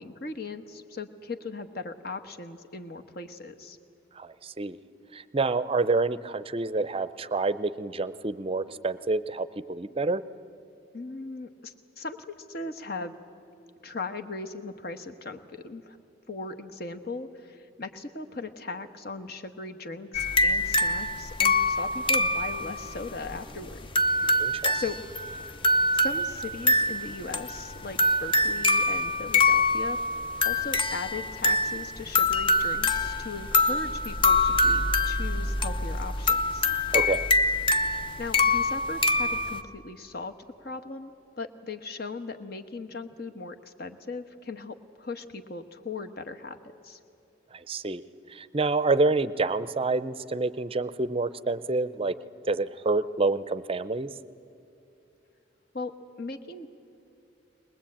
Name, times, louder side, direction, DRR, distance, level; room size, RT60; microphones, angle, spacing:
voice 1, 0.0-3.8 10.9-13.1 13.8-16.0 16.3-23.9 24.2-24.3 24.7-25.0 25.9-30.0 30.4-36.6 38.2-40.3 40.6-46.6 46.8-47.0 55.7-55.9 56.2-56.7, left 3 dB, 55° left, 7 dB, 1.2 m, -38 dB
voice 2, 4.2-4.8 5.1-10.2 24.4-24.8 36.9-37.3 47.7-48.0 48.3-52.2 52.5-54.1, right 3 dB, 30° right, 16 dB, 0.5 m, -27 dB
sound 1, 20.1-39.6, left 2 dB, 25° left, 0.8 m, -25 dB
22.5 x 20.5 x 8.7 m, 2.9 s
head